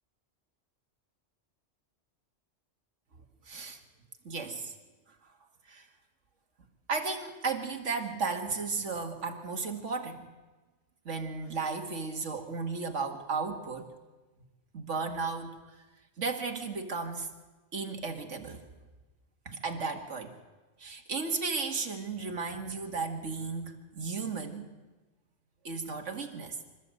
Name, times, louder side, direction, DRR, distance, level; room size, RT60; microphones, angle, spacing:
voice 1, 3.5-3.8 4.2-4.7 5.7-5.9 6.9-10.3 11.1-13.9 14.7-15.6 16.2-17.3 17.7-18.6 19.5-20.3 20.8-24.7 25.6-26.6, right 4 dB, 75° right, 5 dB, 2.1 m, -34 dB
26.5 x 14.0 x 7.7 m, 1.2 s
omnidirectional pair, 1.3 m